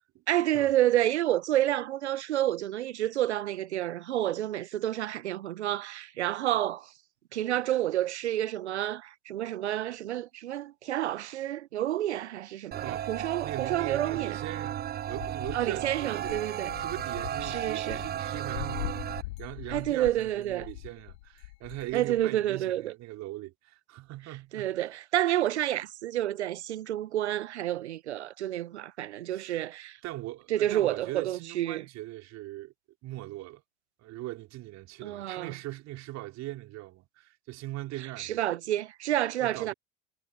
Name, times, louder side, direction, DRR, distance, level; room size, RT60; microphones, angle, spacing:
voice 1, 0.3-6.9 7.3-14.4 15.5-16.7 17.4-18.0 19.7-20.7 21.9-22.9 24.5-30.0 30.5-31.8 35.0-35.5 38.2-39.7, right 13 dB, 75° right, 1.0 m, -29 dB
sound 1, 12.7-19.2, right 10 dB, 25° right, 0.8 m, -35 dB
voice 2, 13.4-14.8 15.1-25.0 29.3-29.6 30.0-32.7 33.0-33.6 34.0-38.4 39.4-39.7, right 17 dB, 50° right, 4.0 m, -40 dB
sound 2, 14.8-22.2, left 20 dB, 65° left, 2.0 m, -42 dB
figure-of-eight pair, 70°, 34 cm